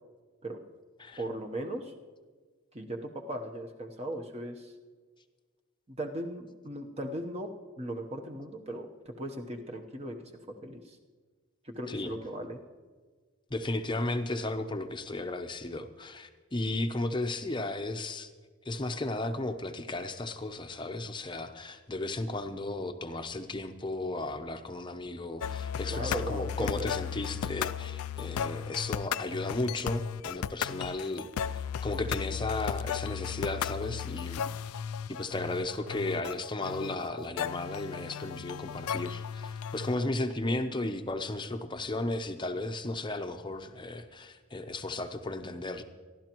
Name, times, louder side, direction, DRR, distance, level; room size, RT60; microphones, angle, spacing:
voice 1, 1.2-1.9 2.7-4.7 5.9-7.5 7.8-10.3 10.6-11.0 11.6-12.6 25.9-26.9, right 1 dB, 30° right, 3 dB, 1.0 m, -38 dB
voice 2, 13.5-18.3 18.7-34.4 34.7-34.8 35.1-45.8, left 2 dB, 20° left, 7 dB, 0.7 m, -34 dB
sound 1, 25.4-40.0, left 8 dB, 85° left, 0.3 m, -35 dB
26.5 x 11.5 x 3.0 m, 1.5 s
head